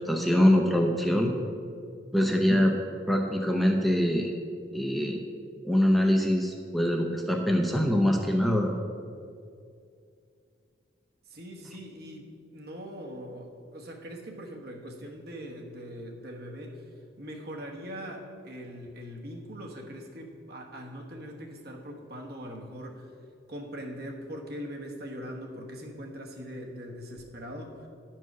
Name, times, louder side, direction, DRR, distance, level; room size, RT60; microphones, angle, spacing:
voice 1, 0.0-1.3 2.1-2.7 3.1-4.3 4.7-5.2 5.6-8.7, equal, ahead, 1 dB, 0.6 m, -24 dB
voice 2, 11.3-16.9 17.2-23.1 23.5-27.9, equal, 60° right, 1 dB, 1.2 m, -41 dB
10.5 x 4.6 x 6.0 m, 2.3 s
head